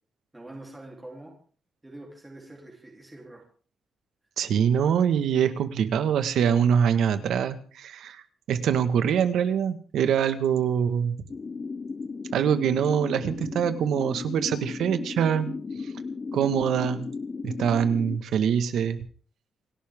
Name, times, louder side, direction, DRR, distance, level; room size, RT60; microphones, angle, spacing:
voice 1, 0.3-1.4 1.8-3.5, right 1 dB, 10° right, -1 dB, 3.6 m, -44 dB
voice 2, 4.4-8.2 8.5-11.2 12.3-15.5 16.3-17.1 17.4-19.0, right 8 dB, 75° right, 10 dB, 1.7 m, -24 dB
sound 1, 11.3-18.2, left 4 dB, 30° left, 0.7 m, -35 dB
29.0 x 12.0 x 3.8 m, 0.42 s
wide cardioid pair, 160°, 0 cm